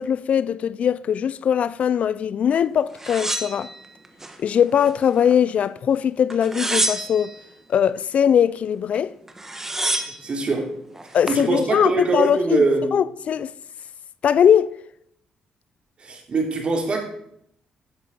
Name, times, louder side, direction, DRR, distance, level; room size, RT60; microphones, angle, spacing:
voice 1, 0.0-3.7 4.4-7.3 7.7-9.1 11.1-12.6 12.9-13.5 14.2-14.7, left 8 dB, 60° left, 0.4 m, -20 dB
sound 1, 3.0-4.4 4.8-5.6 6.3-7.4 9.0-9.1 9.3-10.3 11.0-11.5, right 1 dB, 15° right, 1.6 m, -27 dB
voice 2, 10.2-10.7 11.3-12.9 16.0-17.0, right 3 dB, 45° right, 3.1 m, -22 dB
11.0 x 7.4 x 5.4 m
cardioid pair, 75°, 3 cm